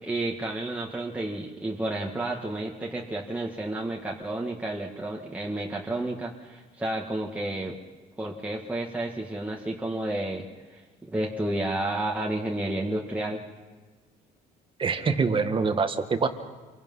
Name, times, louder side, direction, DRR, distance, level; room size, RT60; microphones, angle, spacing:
voice 1, 0.0-7.7 8.2-10.4 10.7-10.8 11.1-13.4, right 1 dB, 10° right, -2 dB, 2.1 m, -31 dB
voice 2, 14.8-16.3, right 5 dB, 30° right, 7 dB, 1.9 m, -25 dB
28.5 x 23.0 x 5.7 m, 1.4 s
cardioid pair, 110°, 17 cm